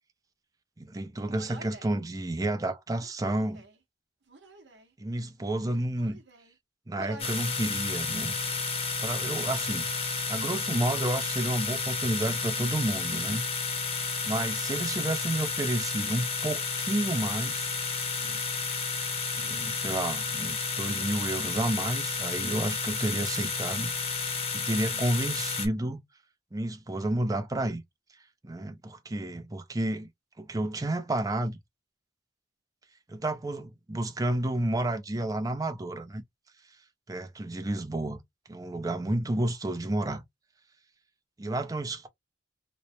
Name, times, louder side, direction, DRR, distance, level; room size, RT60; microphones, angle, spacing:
voice 1, 0.8-3.6 5.0-6.2 6.9-8.3 8.6-13.4 14.2-17.8 18.2-18.4 19.3-26.0 26.5-27.8 28.4-30.1 30.4-31.6 33.1-36.2 37.1-38.2 38.5-40.2 41.4-42.1, right 1 dB, 20° right, 0.5 m, -31 dB
Human voice, 1.2-2.0 2.9-3.8 4.3-4.9 5.6-6.5 6.9-7.5 7.9-8.6, right 3 dB, 65° right, 0.9 m, -49 dB
sound 1, 7.2-25.7, left 4 dB, 35° left, 0.9 m, -31 dB
3.1 x 2.1 x 4.2 m
head